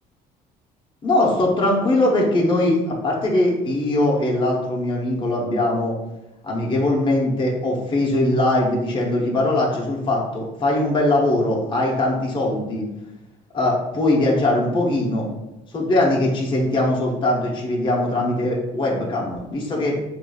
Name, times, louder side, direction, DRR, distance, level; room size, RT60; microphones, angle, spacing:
voice 1, 1.0-5.9 6.4-12.9 13.5-15.3 15.7-20.0, left 1 dB, 30° left, -2 dB, 0.8 m, -21 dB
4.7 x 2.5 x 2.3 m, 0.96 s
cardioid pair, 110°, 17 cm